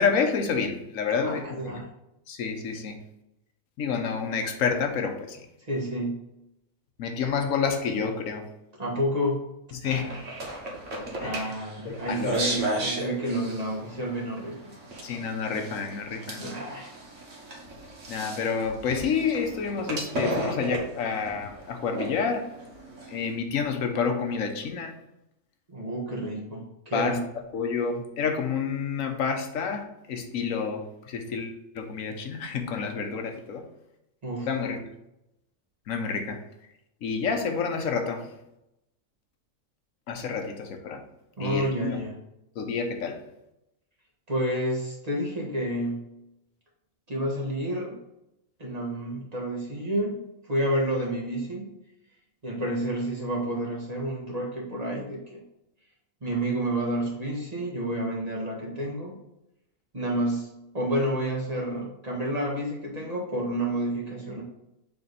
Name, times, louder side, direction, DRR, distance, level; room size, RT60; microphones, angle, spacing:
voice 1, 0.0-1.8 2.3-3.0 3.8-5.4 7.0-8.5 9.7-10.1 11.2-11.5 11.8-12.6 15.0-16.4 18.1-22.5 23.1-25.0 26.9-27.2 27.5-33.6 34.5-34.8 35.9-36.4 37.0-38.3 40.1-41.0 41.4-42.0 42.6-43.2, left 5 dB, 80° left, 5 dB, 1.2 m, -29 dB
voice 2, 1.2-1.9 5.7-6.2 8.8-9.4 9.8-10.2 11.2-14.6 16.3-16.9 25.7-27.2 34.2-34.5 41.4-42.1 44.3-46.0 47.1-48.0 48.6-50.2 50.5-51.7 52.4-55.4 56.2-59.2 59.9-60.5 60.7-64.4, right 1 dB, 30° right, -2 dB, 1.4 m, -30 dB
sound 1, 9.9-23.4, right 1 dB, 65° right, 1.7 m, -35 dB
6.9 x 3.4 x 4.0 m, 0.85 s
omnidirectional pair, 1.4 m